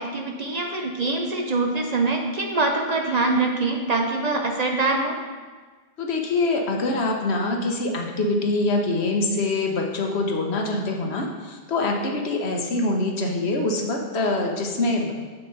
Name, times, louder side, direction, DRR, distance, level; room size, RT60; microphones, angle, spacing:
voice 1, 0.0-5.2, right 3 dB, 45° right, 2 dB, 0.7 m, -24 dB
voice 2, 6.0-15.1, left 2 dB, 80° left, 1 dB, 1.2 m, -24 dB
7.3 x 5.9 x 3.9 m, 1.4 s
omnidirectional pair, 1.1 m